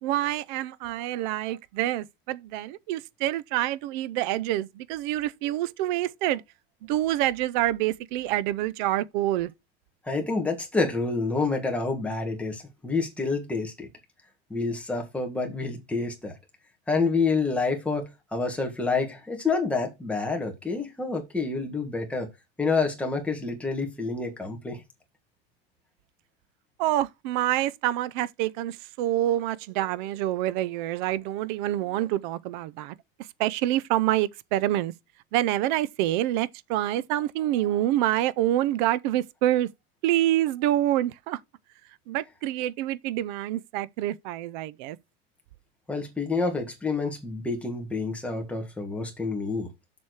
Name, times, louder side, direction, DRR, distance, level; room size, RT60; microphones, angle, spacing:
voice 1, 0.0-6.4 6.9-9.5 26.8-33.0 33.4-34.9 35.3-39.7 40.0-41.4 42.1-45.0, right 14 dB, 45° right, 0.6 m, -27 dB
voice 2, 10.1-13.9 14.5-16.3 16.9-22.3 22.6-24.8 45.9-49.7, left 4 dB, 5° left, 1.6 m, -28 dB
7.4 x 6.1 x 4.8 m
supercardioid pair, 170°, 32 cm